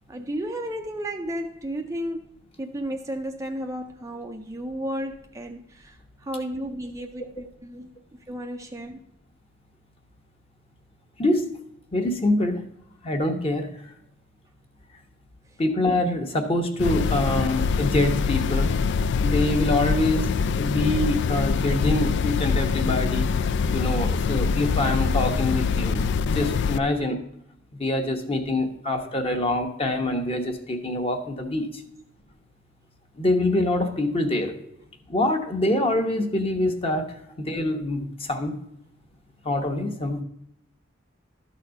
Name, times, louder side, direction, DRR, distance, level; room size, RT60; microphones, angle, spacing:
voice 1, 0.1-2.3 2.6-7.9 8.3-9.0 26.9-27.0 34.7-34.8, right 1 dB, 15° right, 5 dB, 0.4 m, -33 dB
voice 2, 11.9-12.6 13.0-13.7 15.6-18.7 19.2-20.3 20.6-23.3 23.7-26.0 26.3-27.2 27.8-31.8 33.2-34.6 35.1-37.0 37.4-38.5 39.4-40.2, left 1 dB, 30° left, 4 dB, 1.1 m, -25 dB
sound 1, 16.8-26.8, left 5 dB, 60° left, 0.3 m, -24 dB
12.5 x 4.2 x 5.1 m, 0.74 s
head